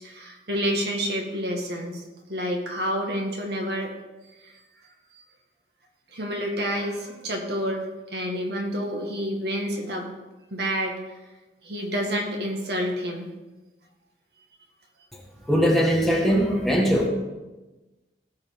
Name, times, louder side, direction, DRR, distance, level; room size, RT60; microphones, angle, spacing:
voice 1, 0.0-2.0 2.3-3.9 4.3-4.6 5.1-5.2 6.1-10.1 10.5-11.0 11.6-13.3, equal, 65° right, 1 dB, 2.1 m, -29 dB
voice 2, 15.5-17.1, equal, ahead, -2 dB, 1.8 m, -21 dB
17.0 x 5.7 x 5.4 m, 1.1 s
head